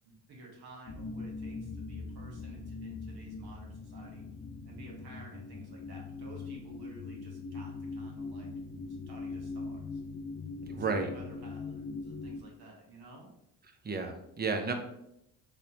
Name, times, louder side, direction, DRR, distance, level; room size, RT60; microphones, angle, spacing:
voice 1, 0.0-4.2 4.6-8.5 9.1-10.0 10.7-13.3, right 2 dB, 60° right, -1 dB, 1.3 m, -52 dB
sound 1, 0.9-12.4, left 4 dB, 25° left, 0.4 m, -41 dB
voice 2, 10.6-11.1 13.8-14.7, right 4 dB, 25° right, 5 dB, 0.6 m, -32 dB
3.7 x 3.2 x 2.9 m, 0.83 s
supercardioid pair, 70°, 43 cm